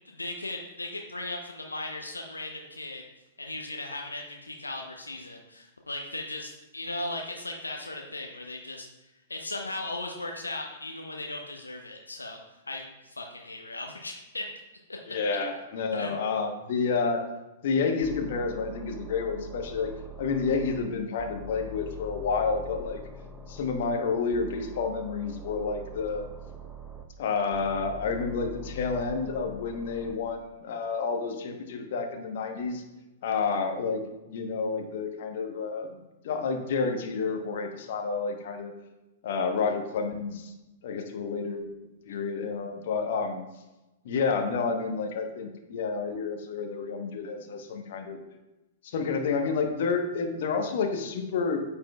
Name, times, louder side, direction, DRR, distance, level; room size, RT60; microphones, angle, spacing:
voice 1, 0.1-3.0 3.4-8.9 9.3-12.4 12.7-14.4 15.9-16.1, left 2 dB, 85° left, 2 dB, 0.7 m, -37 dB
voice 2, 15.1-17.2 17.6-19.9 20.2-23.0 23.5-26.2 27.2-32.8 33.2-34.0 34.3-35.9 36.2-38.7 39.2-40.5 40.8-41.7 42.1-43.4 44.0-48.2 48.8-51.6, left 5 dB, 55° left, 5 dB, 1.0 m, -29 dB
sound 1, 18.0-20.9 21.2-24.0 24.3-27.0 27.5-30.1, equal, 15° right, 0.7 m, -43 dB
8.7 x 5.3 x 2.3 m, 1.0 s
figure-of-eight pair, 105°, 0 cm